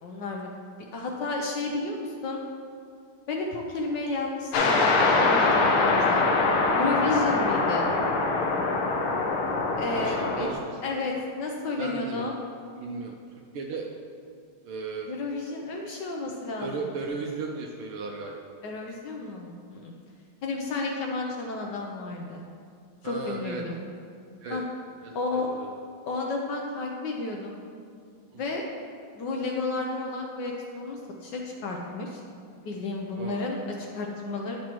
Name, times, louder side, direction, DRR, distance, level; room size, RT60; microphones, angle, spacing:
voice 1, 0.0-0.5 0.9-2.4 3.3-6.3 6.8-7.9 9.8-10.5 10.8-12.3 15.1-16.7 18.6-19.9 20.4-22.4 23.0-23.8 24.5-24.6 25.1-25.5 26.1-27.6 28.4-28.6 29.1-32.2 32.6-34.6, left 3 dB, 65° left, 0 dB, 1.2 m, -32 dB
sound 1, 4.5-10.5, left 3 dB, 85° left, 1.6 m, -23 dB
voice 2, 9.9-10.8 11.8-12.3 12.8-13.1 13.5-13.9 14.6-15.1 16.6-18.5 23.0-23.6 24.4-24.6 25.0-25.2 25.5-25.7 28.3-28.4 33.2-33.5, right 4 dB, 85° right, 0 dB, 1.5 m, -35 dB
10.0 x 6.1 x 3.0 m, 2.2 s
omnidirectional pair, 2.3 m